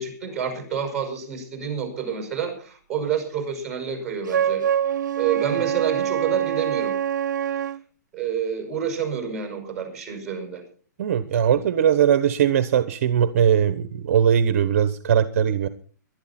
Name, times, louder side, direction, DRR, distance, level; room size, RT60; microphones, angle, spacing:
voice 1, 0.0-4.6 5.2-7.0 8.1-10.6, right 7 dB, 5° right, 3 dB, 5.8 m, -28 dB
Wind instrument woodwind instrument, 4.3-7.8, right 9 dB, 80° right, 0.7 m, -24 dB
voice 2, 11.0-15.7, right 8 dB, 45° right, 12 dB, 1.0 m, -20 dB
21.0 x 12.0 x 4.3 m, 0.41 s
hypercardioid pair, 175°, 10 cm